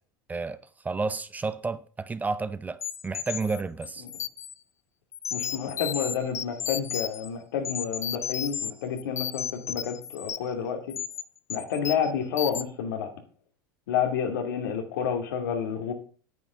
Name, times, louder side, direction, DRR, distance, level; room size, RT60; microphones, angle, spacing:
voice 1, 0.3-4.1, right 4 dB, 15° right, 0.6 m, -31 dB
sound 1, 2.8-4.5 5.1-7.3 7.6-8.7 9.0-10.5 10.9-11.2 11.5-12.1 12.4-12.6, left 9 dB, 30° left, 0.5 m, -33 dB
voice 2, 5.3-11.0 11.5-13.1 13.9-15.9, left 7 dB, 80° left, 2.6 m, -30 dB
9.5 x 8.5 x 5.6 m
hypercardioid pair, 105°, 11 cm